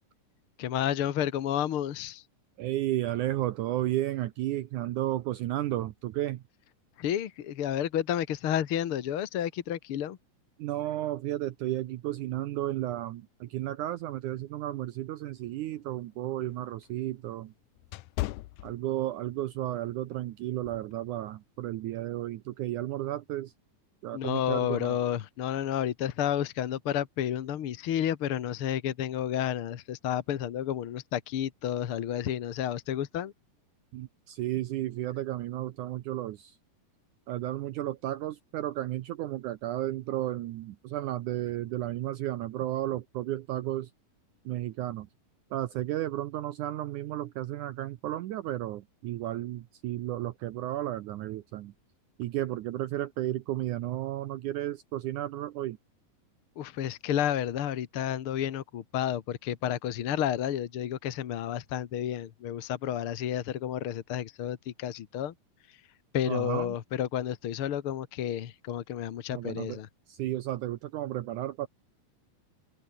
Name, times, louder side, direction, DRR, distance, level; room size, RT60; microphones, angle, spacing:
voice 1, 0.6-2.2 7.0-10.2 24.1-33.3 56.6-65.3 65.7-65.8 66.1-69.9, left 10 dB, 60° left, 1.5 m, -31 dB
voice 2, 2.6-6.4 10.6-17.5 18.6-23.5 24.0-25.0 33.9-36.6 37.3-43.9 44.5-45.1 45.5-51.7 52.2-55.8 66.3-66.8 69.3-69.8 70.1-71.7, right 14 dB, 70° right, 2.2 m, -33 dB
sound 1, 15.6-19.4 19.8-20.0 20.6-20.9, left 18 dB, 75° left, 1.8 m, -38 dB
open air
omnidirectional pair, 4.0 m